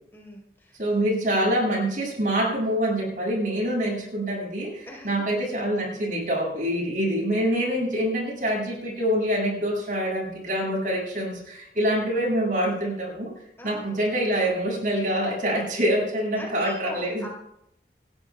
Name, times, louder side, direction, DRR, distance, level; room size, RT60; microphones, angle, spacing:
voice 1, 0.1-0.9 4.9-5.5 13.6-14.0 16.4-17.3, equal, 15° left, -2 dB, 4.2 m, -41 dB
voice 2, 0.8-13.3 13.6-17.2, equal, 50° right, -2 dB, 7.3 m, -25 dB
30.0 x 14.5 x 2.4 m, 0.79 s
head